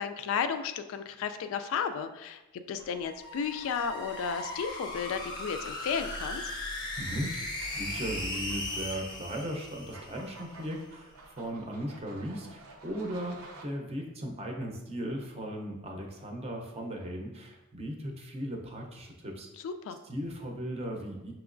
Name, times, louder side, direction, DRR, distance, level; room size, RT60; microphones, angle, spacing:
voice 1, 0.0-2.4 2.7-6.4 19.6-20.0, left 6 dB, 65° left, 10 dB, 0.3 m, -33 dB
sound 1, 2.7-13.6, right 2 dB, 75° right, 0.6 m, -53 dB
sound 2, 3.0-10.4, left 1 dB, 20° left, 0.6 m, -38 dB
voice 2, 7.0-19.5 20.1-21.3, equal, 30° right, 1 dB, 0.6 m, -37 dB
5.9 x 3.0 x 2.5 m, 0.99 s
head